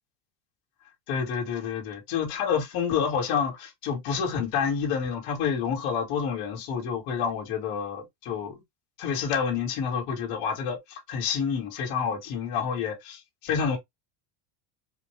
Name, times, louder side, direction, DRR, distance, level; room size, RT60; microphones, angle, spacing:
voice 1, 1.1-8.6 9.0-13.8, left 6 dB, 45° left, 1.8 m, -28 dB
4.9 x 2.3 x 3.1 m
cardioid pair, 180°, 49 cm